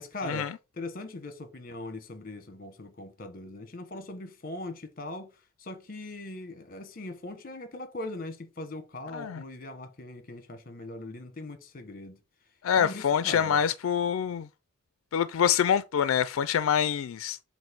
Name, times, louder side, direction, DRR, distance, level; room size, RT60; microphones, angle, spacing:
voice 1, 0.0-5.3 5.6-12.2 12.8-13.6, left 2 dB, 45° left, 1.2 m, -40 dB
voice 2, 12.6-14.5 15.1-17.5, left 8 dB, 80° left, 0.4 m, -26 dB
7.5 x 2.6 x 5.2 m
head